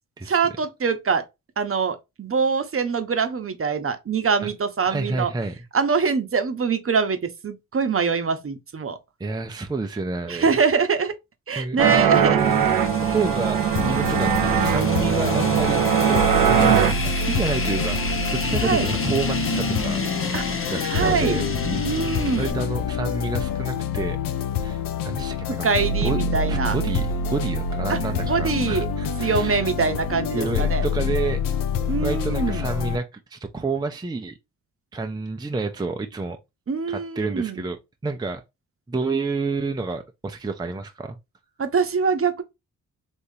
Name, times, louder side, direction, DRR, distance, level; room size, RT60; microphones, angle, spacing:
voice 1, 0.3-1.2 1.6-5.3 5.7-9.0 10.3-11.1 11.5-12.4 18.6-18.9 20.3-20.4 20.9-21.4 21.8-22.6 25.6-26.8 27.9-28.0 28.2-28.9 29.2-30.8 31.9-32.7 36.7-37.6 41.6-42.4, right 5 dB, 40° right, 0.9 m, -24 dB
voice 2, 4.8-5.6 9.2-10.5 11.6-16.2 16.5-20.0 20.7-21.4 22.4-24.2 24.6-25.7 26.0-26.2 26.5-29.7 30.3-31.4 32.0-34.4 34.9-36.4 36.9-37.8 38.0-38.4 38.9-41.2, right 3 dB, 10° right, 0.6 m, -29 dB
sound 1, 11.8-16.9, right 8 dB, 75° right, 0.7 m, -20 dB
sound 2, 12.4-22.5, left 2 dB, 40° left, 1.1 m, -30 dB
sound 3, 13.7-33.0, left 4 dB, 80° left, 0.6 m, -27 dB
3.6 x 2.9 x 2.7 m
supercardioid pair, 55°, 33 cm